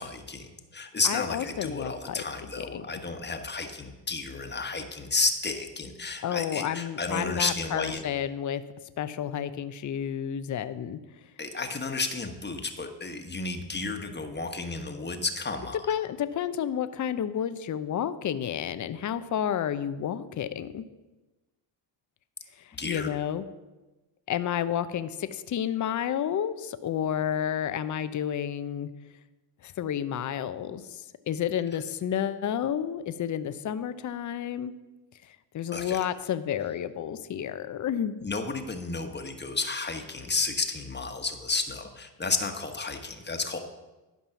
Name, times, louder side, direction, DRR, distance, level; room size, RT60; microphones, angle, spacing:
voice 1, 0.0-8.0 11.4-15.8 22.8-23.1 35.7-36.0 38.2-43.6, left 3 dB, 20° left, 6 dB, 1.4 m, -32 dB
voice 2, 1.0-2.2 2.6-2.8 6.2-8.6 9.0-11.0 15.9-20.8 22.8-23.4 24.3-28.9 29.6-34.7 35.5-38.2, left 9 dB, 35° left, 12 dB, 0.7 m, -30 dB
12.0 x 5.4 x 5.8 m, 1.1 s
hypercardioid pair, 60°, 50 cm